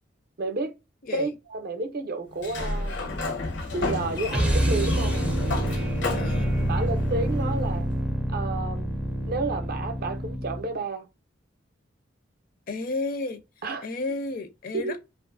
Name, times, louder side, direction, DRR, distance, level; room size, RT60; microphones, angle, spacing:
voice 1, 0.4-0.7 1.1-3.0 3.7-5.2 6.7-7.9 8.3-8.9 9.3-11.1 13.6-13.8 14.7-15.0, right 3 dB, 55° right, 0.5 m, -31 dB
voice 2, 1.0-1.3 6.1-6.6 12.7-13.4 13.8-15.0, left 2 dB, 50° left, 0.5 m, -32 dB
Sliding door, 2.3-8.0, left 3 dB, 80° left, 0.8 m, -31 dB
sound 1, 4.3-10.7, right 1 dB, 5° right, 0.4 m, -27 dB
2.6 x 2.4 x 2.5 m
head